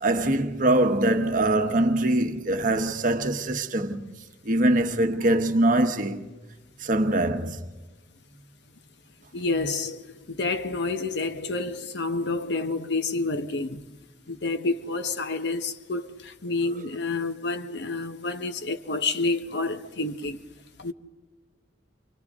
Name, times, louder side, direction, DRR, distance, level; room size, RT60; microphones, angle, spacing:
voice 1, 0.0-4.0 4.4-6.2 6.8-7.6, right 1 dB, 45° right, 1.1 m, -23 dB
voice 2, 9.3-13.8 14.3-20.4 20.8-20.9, left 3 dB, 65° left, 1.0 m, -29 dB
29.0 x 25.0 x 3.6 m
head